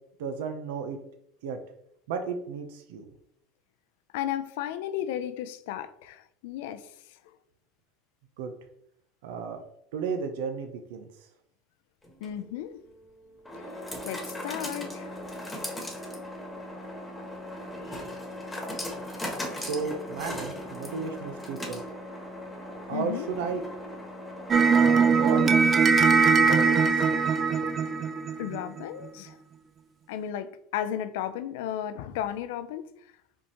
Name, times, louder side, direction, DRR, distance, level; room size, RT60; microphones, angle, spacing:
voice 1, 0.2-1.0 1.4-1.6 2.1-3.1 8.4-8.5 9.2-9.6 9.9-11.1 19.6-21.8 22.9-23.6 24.7-25.6 26.4-27.1, right 5 dB, 80° right, 6 dB, 0.6 m, -33 dB
voice 2, 4.1-6.9 7.3-7.4 12.2-12.8 14.0-15.2 17.9-18.0 22.9-23.3 28.4-29.4 30.1-32.9, left 11 dB, 80° left, 11 dB, 0.4 m, -34 dB
sound 1, 12.0-26.0, left 1 dB, 10° left, 1.3 m, -38 dB
sound 2, 24.5-28.8, right 5 dB, 35° right, 0.3 m, -21 dB
5.1 x 3.5 x 2.9 m, 0.72 s
supercardioid pair, 105°, 0 cm